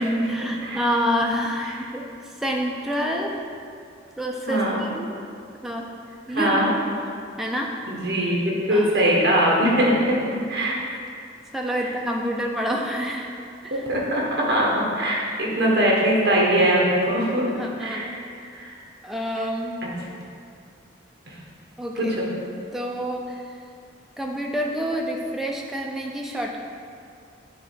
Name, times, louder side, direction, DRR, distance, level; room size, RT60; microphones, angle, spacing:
voice 1, 0.0-3.4 4.2-5.2 5.6-5.9 6.3-6.7 7.4-7.7 8.2-8.4 8.7-9.1 10.9-11.0 11.5-13.3 13.6-13.9 17.6-18.2 19.0-19.8 21.8-22.1 22.7-23.6 24.2-26.6, equal, ahead, -1 dB, 0.5 m, -28 dB
voice 2, 4.5-4.8 6.3-6.7 7.9-10.1 10.5-10.8 13.7-17.4 17.8-18.1 18.5-18.7 22.0-22.3, right 1 dB, 55° right, -3 dB, 1.4 m, -21 dB
7.7 x 3.2 x 5.7 m, 2.3 s
head